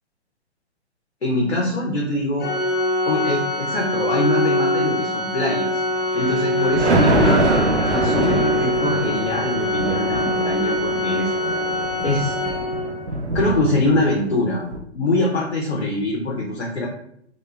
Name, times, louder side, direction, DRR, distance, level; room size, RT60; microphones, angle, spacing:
voice 1, 1.2-2.5 3.1-5.8 6.1-11.3 12.0-12.3 13.3-14.6 14.9-16.9, left 2 dB, 85° left, -3 dB, 0.7 m, -23 dB
Organ, 2.4-13.1, left 1 dB, 40° left, 0.5 m, -24 dB
Thunder, 6.0-14.3 14.7-14.8, right 2 dB, 90° right, 0.5 m, -24 dB
2.2 x 2.2 x 3.1 m, 0.72 s
figure-of-eight pair, 120°, 33 cm